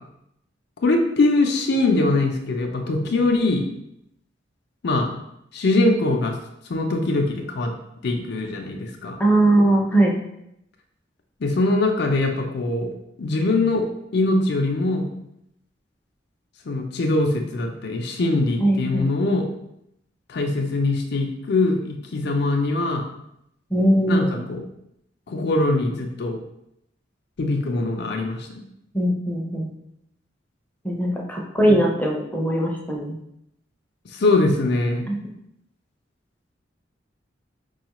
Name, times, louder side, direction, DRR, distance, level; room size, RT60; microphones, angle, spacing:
voice 1, 0.8-3.6 4.8-5.1 5.5-6.3 6.7-7.7 8.0-9.2 11.4-12.9 13.2-13.9 14.1-15.1 16.7-19.5 20.3-23.0 24.1-24.6 25.3-26.4 27.4-28.5 31.7-31.8 34.1-35.1, left 2 dB, 60° left, 3 dB, 0.5 m, -22 dB
voice 2, 9.2-10.2 18.6-19.1 23.7-24.4 28.9-29.7 30.8-33.2 35.1-35.2, right 1 dB, 10° left, -1 dB, 0.5 m, -20 dB
4.8 x 2.3 x 2.9 m, 0.79 s
head